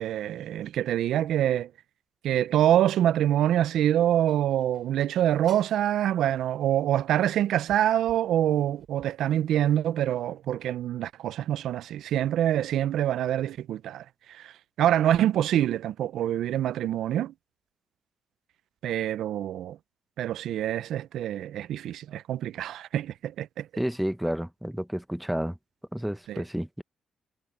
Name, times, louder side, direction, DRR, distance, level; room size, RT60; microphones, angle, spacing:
voice 1, 0.0-1.7 2.2-17.3 18.8-19.8 20.2-23.7 26.3-26.4, right 11 dB, 85° right, 0.3 m, -26 dB
sound 1, 4.2-5.8 6.8-6.9 7.4-9.2, right 7 dB, 40° right, 4.6 m, -54 dB
voice 2, 23.8-25.6 25.9-26.8, equal, ahead, 0.7 m, -30 dB
wide cardioid pair, 180°, 0 cm